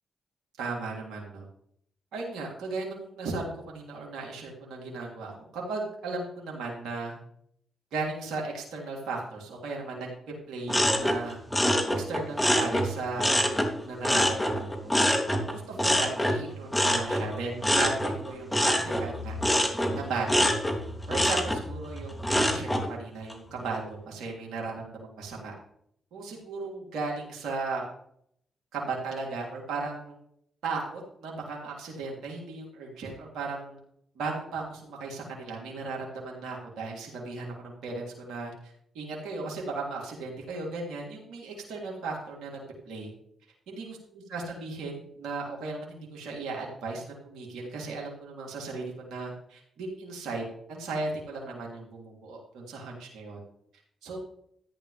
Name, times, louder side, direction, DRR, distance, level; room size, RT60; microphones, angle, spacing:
voice 1, 0.6-1.5 2.1-7.2 7.9-10.1 10.5-11.4 11.9-15.0 15.4-19.4 19.9-20.5 21.1-25.5 26.1-27.9 28.7-30.1 30.6-33.8 34.1-38.5 38.9-42.6 42.9-43.1 43.7-44.0 44.3-53.4 54.0-54.2, right 3 dB, 80° right, -2 dB, 3.0 m, -36 dB
sound 1, 10.7-13.7 14.0-22.9 23.3-23.8, equal, 15° left, 2.8 m, -26 dB
14.5 x 9.9 x 3.4 m, 0.70 s
supercardioid pair, 50°, 0 cm